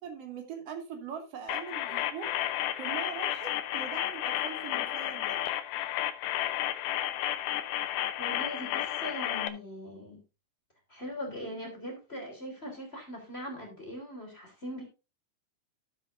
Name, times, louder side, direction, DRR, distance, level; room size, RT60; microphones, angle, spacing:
voice 1, 0.0-2.4 2.8-5.4, right 6 dB, 45° right, 4 dB, 2.4 m, -41 dB
sound 1, 1.5-9.5, left 13 dB, 75° left, 2.7 m, -32 dB
voice 2, 8.2-10.2 10.9-14.8, equal, 15° left, 1 dB, 2.7 m, -40 dB
14.5 x 7.5 x 2.6 m, 0.29 s
omnidirectional pair, 5.3 m